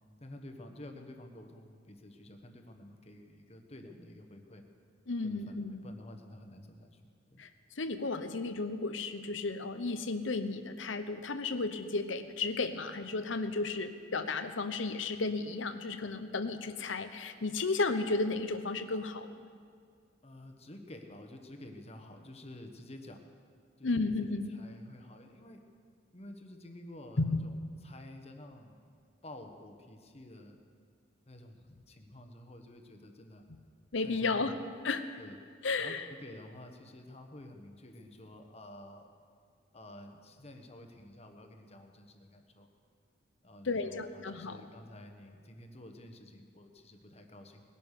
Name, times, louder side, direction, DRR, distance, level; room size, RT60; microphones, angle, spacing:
voice 1, 0.2-4.6 5.2-7.0 7.3-7.4 20.2-23.3 23.8-24.1 24.5-25.6 26.1-27.5 27.8-28.9 29.2-30.6 31.3-33.4 34.0-34.6 35.2-35.4 35.8-39.1 39.7-42.7 43.4-47.6, left 1 dB, 35° left, 5 dB, 1.4 m, -50 dB
voice 2, 5.1-5.8 7.4-7.5 7.8-19.3 23.8-24.5 27.2-27.4 33.9-34.5 34.8-35.0 35.6-36.0 43.6-44.6, left 3 dB, 70° left, 10 dB, 0.9 m, -33 dB
19.5 x 11.0 x 6.7 m, 2.1 s
head